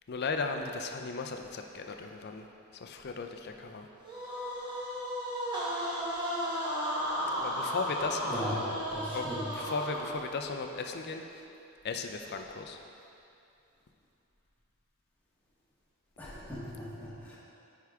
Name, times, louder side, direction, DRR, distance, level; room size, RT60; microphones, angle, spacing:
voice 1, 0.1-2.5 2.7-3.9 7.2-8.8 9.1-9.3 9.5-11.4 11.8-12.8, left 4 dB, 50° left, 5 dB, 0.5 m, -36 dB
sound 1, 4.0-10.4, equal, 20° right, 1.3 m, -34 dB
voice 2, 8.2-8.6 8.9-9.5 16.2-17.4, equal, 10° left, -8 dB, 1.4 m, -38 dB
9.2 x 4.7 x 3.6 m, 2.7 s
head